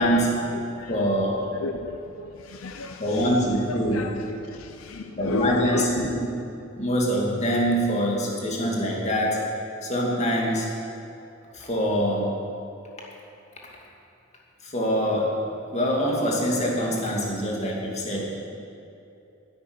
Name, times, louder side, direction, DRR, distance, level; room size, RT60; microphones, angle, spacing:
voice 1, 0.0-0.4 0.9-1.4 3.0-4.1 5.2-6.1 6.8-9.4 9.8-10.7 11.5-12.3 14.6-15.4 15.7-18.5, equal, 35° left, -2 dB, 2.4 m, -24 dB
voice 2, 0.5-1.0 1.6-3.0 3.7-5.8, left 4 dB, 80° left, 6 dB, 0.6 m, -33 dB
11.0 x 8.5 x 9.8 m, 2.7 s
head